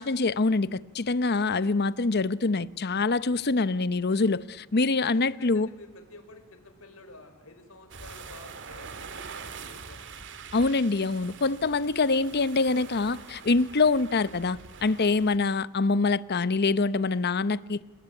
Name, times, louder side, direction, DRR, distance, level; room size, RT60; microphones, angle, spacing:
voice 1, 0.0-5.7 10.5-17.8, left 3 dB, 50° left, 0.8 m, -25 dB
voice 2, 5.1-10.1 14.9-15.1, left 2 dB, 75° left, 4.6 m, -50 dB
sound 1, 7.9-15.4, right 5 dB, 60° right, 2.1 m, -44 dB
30.0 x 20.0 x 9.1 m
head